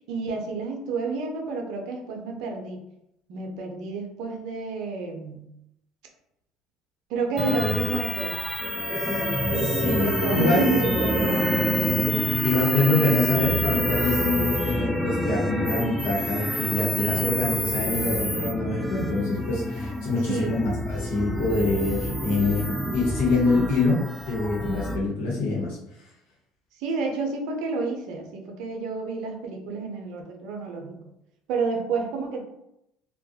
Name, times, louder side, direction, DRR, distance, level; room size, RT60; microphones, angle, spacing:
voice 1, 0.1-2.8 3.3-5.4 7.1-8.4 8.9-11.5 12.9-13.2 20.3-20.5 26.8-31.0 31.5-32.4, right 4 dB, 65° right, 2 dB, 0.5 m, -30 dB
sound 1, 7.4-25.0, left 1 dB, 5° left, 0.3 m, -27 dB
voice 2, 9.5-10.7 12.4-25.8, left 2 dB, 75° left, -4 dB, 0.9 m, -25 dB
2.3 x 2.1 x 2.7 m, 0.82 s
hypercardioid pair, 70°, 0 cm